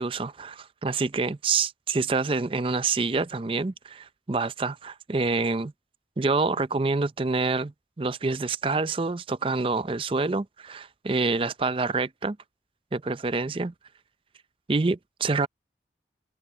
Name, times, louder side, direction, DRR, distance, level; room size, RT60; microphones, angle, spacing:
voice 1, 0.0-5.7 6.2-12.4 12.9-13.7 14.7-15.5, right 3 dB, 30° right, 0.5 m, -27 dB
head